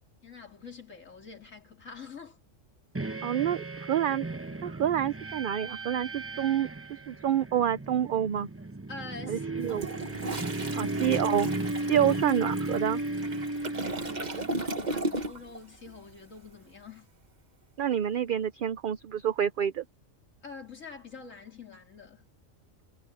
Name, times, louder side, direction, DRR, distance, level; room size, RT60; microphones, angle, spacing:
voice 1, 0.2-2.4 8.9-9.9 10.2-11.0 11.8-12.1 14.0-17.1 20.4-22.3, left 4 dB, 80° left, 3.4 m, -46 dB
sound 1, 2.9-15.0, right 2 dB, 15° right, 0.7 m, -35 dB
voice 2, 3.2-4.3 4.6-8.5 9.3-9.9 10.8-11.5 11.9-13.0 17.8-19.8, right 9 dB, 55° right, 0.6 m, -28 dB
Toilet flush, 9.6-15.6 15.9-16.1, right 2 dB, 35° right, 1.4 m, -36 dB
omnidirectional pair, 1.3 m